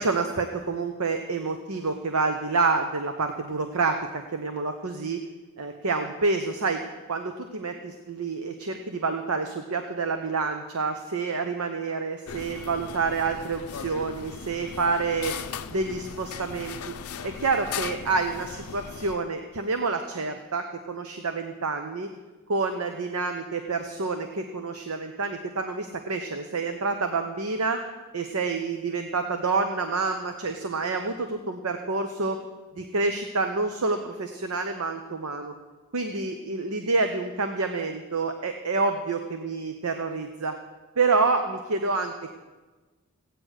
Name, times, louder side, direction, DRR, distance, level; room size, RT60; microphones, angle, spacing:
voice 1, 0.0-5.2 5.6-6.8 7.1-15.3 15.7-16.9 17.2-22.1 22.5-27.8 28.1-32.4 32.8-35.5 35.9-40.5 41.0-42.3, right 4 dB, 85° right, 6 dB, 0.9 m, -28 dB
sound 1, 12.3-19.2, left 6 dB, 85° left, 0.6 m, -38 dB
15.5 x 9.5 x 6.4 m, 1.3 s
head